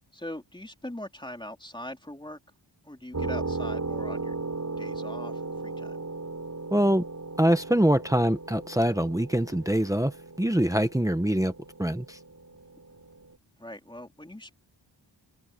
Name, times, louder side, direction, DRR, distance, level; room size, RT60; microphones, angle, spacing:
voice 1, 0.1-2.4 2.8-4.4 4.8-6.0 13.6-14.5, left 1 dB, 10° left, 3.8 m, -41 dB
sound 1, 3.1-13.3, right 3 dB, 40° right, 5.2 m, -37 dB
voice 2, 6.7-7.1 7.4-10.1 10.4-11.5 11.8-12.2, right 1 dB, 5° right, 1.1 m, -24 dB
open air
wide cardioid pair, 125°, 45 cm